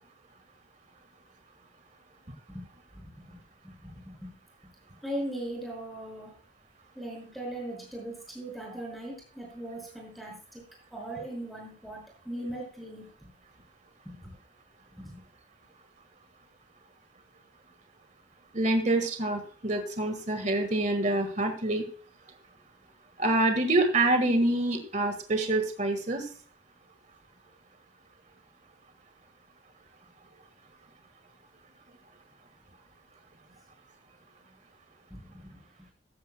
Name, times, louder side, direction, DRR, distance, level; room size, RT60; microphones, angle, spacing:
voice 1, 2.9-4.3 5.0-6.3 7.0-10.6 10.9-13.3 14.0-14.3 14.9-15.2 35.1-35.6, right 1 dB, ahead, -2 dB, 5.6 m, -39 dB
voice 2, 18.5-21.9 23.2-26.3, right 2 dB, 40° right, 7 dB, 1.6 m, -26 dB
15.0 x 12.0 x 2.2 m, 0.40 s
head